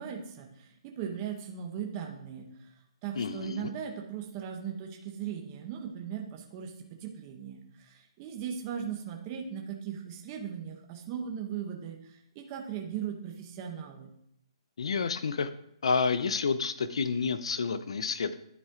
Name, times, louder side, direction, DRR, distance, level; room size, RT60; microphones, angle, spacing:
voice 1, 0.0-2.7 3.0-14.1, right 8 dB, 30° right, 2 dB, 0.8 m, -38 dB
voice 2, 3.2-3.7 14.8-15.5 15.8-18.4, left 5 dB, 80° left, 13 dB, 0.5 m, -29 dB
10.0 x 4.3 x 3.7 m, 0.74 s
hypercardioid pair, 160°, 3 cm